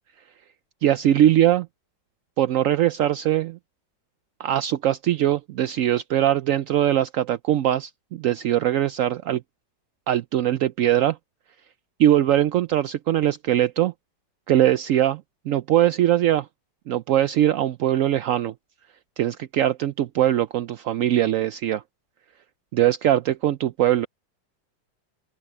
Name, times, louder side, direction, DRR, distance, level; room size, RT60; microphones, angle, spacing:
voice 1, 0.8-1.7 2.4-3.6 4.4-9.4 10.1-11.2 12.0-13.9 14.5-15.2 15.5-16.5 16.9-18.5 19.2-21.8 22.7-24.1, right 12 dB, 75° right, 0.7 m, -21 dB
open air
omnidirectional pair, 1.9 m